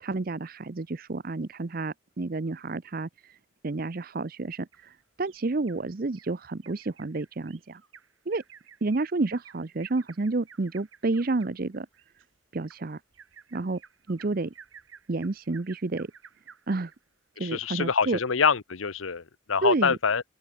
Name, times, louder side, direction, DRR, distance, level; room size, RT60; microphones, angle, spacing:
voice 1, 0.0-3.1 3.6-4.7 5.2-7.8 8.3-8.4 8.8-11.9 12.5-13.0 13.5-13.8 14.1-14.5 15.1-16.1 16.7-16.9 17.4-18.2 19.6-20.0, right 3 dB, 45° right, 0.6 m, -30 dB
Bird vocalization bird call bird song, 4.7-5.8 6.2-6.3 6.6-17.0 17.4-17.5 17.9-18.0, right 7 dB, 75° right, 2.5 m, -53 dB
voice 2, 17.4-20.2, left 5 dB, 75° left, 0.9 m, -25 dB
open air
head